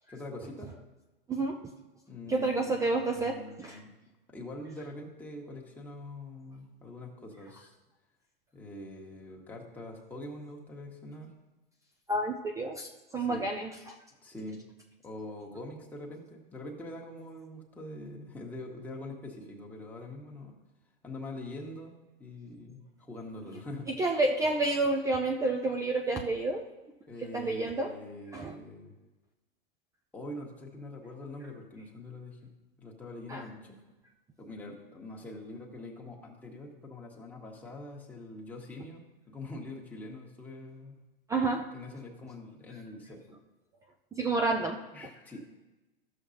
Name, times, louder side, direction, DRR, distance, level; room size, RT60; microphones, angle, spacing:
voice 1, 0.1-0.7 2.1-3.9 4.3-7.7 8.5-11.3 13.1-13.5 14.2-14.6 15.0-20.5 21.0-21.9 22.2-23.9 27.1-28.9 30.1-32.5 32.8-33.8 34.4-41.0 41.7-43.4 44.9-45.5, left 2 dB, 5° left, -2 dB, 1.4 m, -44 dB
voice 2, 1.3-1.6 2.3-3.8 12.1-12.9 13.1-14.0 23.9-26.6 27.3-27.9 28.3-28.5 33.3-33.4 41.3-41.6 42.7-42.8 44.1-44.8, right 2 dB, 10° right, 1 dB, 0.4 m, -29 dB
13.0 x 6.5 x 2.8 m, 1.1 s
hypercardioid pair, 100°, 29 cm